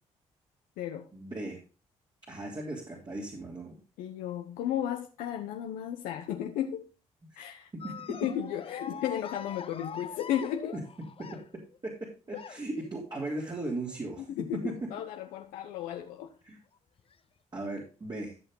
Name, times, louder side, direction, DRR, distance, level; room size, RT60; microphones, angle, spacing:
voice 1, 1.1-1.6 2.3-3.8 7.3-7.5 10.7-10.8 11.2-14.3 14.6-14.9 16.4-16.6 17.5-18.3, right 2 dB, 35° right, 3.3 m, -37 dB
voice 2, 4.0-6.9 7.4-7.7 8.1-10.7 14.3-16.3, left 10 dB, 90° left, 1.0 m, -34 dB
sound 1, 7.8-11.8 12.3-12.9 13.9-14.2 14.7-14.8 16.1-16.2 17.0-17.1, left 6 dB, 45° left, 0.7 m, -44 dB
14.0 x 5.8 x 3.8 m
supercardioid pair, 60°, 14 cm